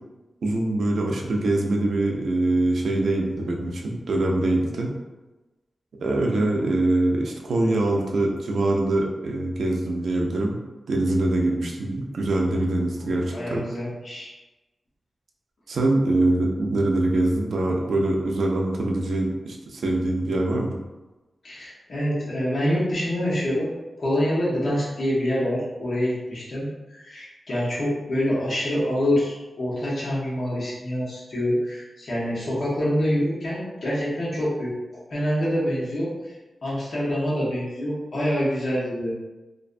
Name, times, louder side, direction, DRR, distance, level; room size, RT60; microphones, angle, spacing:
voice 1, 0.4-4.9 6.0-10.6 10.9-13.6 15.7-20.8, right 2 dB, 85° right, 0 dB, 0.4 m, -23 dB
voice 2, 13.0-14.3 21.4-23.7 24.0-26.7 26.9-36.1 36.6-39.1, equal, 55° left, -7 dB, 0.8 m, -26 dB
2.4 x 2.2 x 2.4 m, 1.1 s
wide cardioid pair, 165°, 0 cm